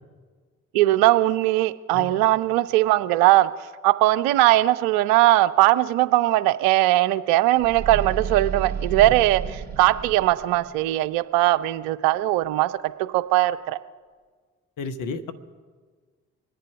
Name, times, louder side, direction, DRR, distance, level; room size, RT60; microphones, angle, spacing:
voice 1, 0.7-3.5 3.8-12.7 13.1-13.8, right 16 dB, 60° right, 16 dB, 0.6 m, -20 dB
voice 2, 1.9-2.2 9.0-9.1 14.8-15.3, left 4 dB, 55° left, 7 dB, 1.1 m, -32 dB
sound 1, 7.6-10.9, right 7 dB, 25° right, 2.6 m, -31 dB
25.0 x 10.5 x 4.9 m, 1.5 s
figure-of-eight pair, 40°, 38 cm